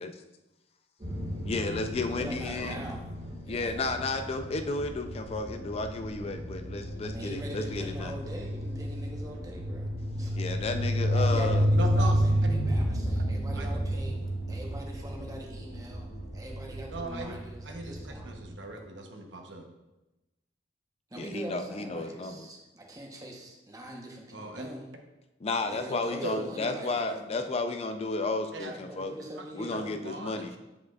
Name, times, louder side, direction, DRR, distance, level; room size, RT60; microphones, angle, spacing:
sound 1, 1.0-18.5, equal, 35° right, 1.7 m, -31 dB
voice 1, 1.4-2.8 3.5-8.1 10.3-11.6 21.2-22.5 25.4-29.1 29.5-30.6, left 3 dB, 35° left, 7 dB, 0.4 m, -32 dB
voice 2, 2.2-3.0 3.4-4.2 7.0-9.9 10.2-10.5 11.1-14.2 14.5-16.1 16.3-18.3 21.1-24.9 25.6-27.3 28.7-30.0, right 1 dB, 20° right, 0 dB, 0.9 m, -43 dB
sound 2, 5.5-17.2, equal, 75° left, 1.2 m, -47 dB
voice 3, 11.7-12.1 13.5-13.7 16.9-17.3 17.6-19.6 24.3-24.7 26.2-26.4 28.5-28.7 29.4-29.5 29.7-30.6, right 2 dB, 85° right, 3 dB, 0.9 m, -38 dB
8.2 x 5.1 x 2.3 m, 1.0 s
head